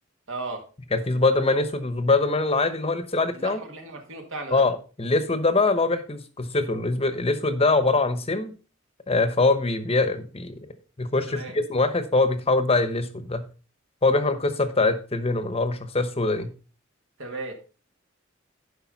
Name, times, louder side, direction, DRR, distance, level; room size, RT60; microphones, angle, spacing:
voice 1, 0.3-0.7 3.3-4.6 11.3-11.6 17.2-17.5, right 2 dB, 70° right, 1.9 m, -35 dB
voice 2, 0.9-3.6 4.5-8.5 9.1-10.6 11.0-13.5 14.0-16.5, left 3 dB, 30° left, 1.0 m, -23 dB
11.5 x 5.3 x 4.0 m
head